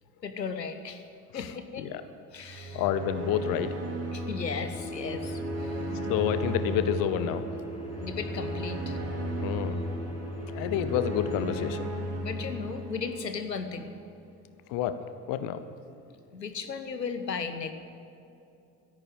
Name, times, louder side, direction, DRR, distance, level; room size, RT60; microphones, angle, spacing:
voice 1, 0.2-1.1 1.3-1.9 2.3-2.8 4.1-5.9 8.0-9.0 12.2-13.9 16.3-17.7, left 5 dB, 85° left, 9 dB, 1.0 m, -36 dB
voice 2, 2.4-3.7 6.1-7.5 9.4-9.8 10.5-11.9 14.7-15.0 15.3-15.6, left 10 dB, 45° left, 12 dB, 1.0 m, -29 dB
sound 1, 2.4-13.7, right 1 dB, 30° right, 3.3 m, -35 dB
sound 2, 4.7-11.8, left 1 dB, 10° left, 1.1 m, -39 dB
14.0 x 11.0 x 9.0 m, 2.6 s
figure-of-eight pair, 65°, 49 cm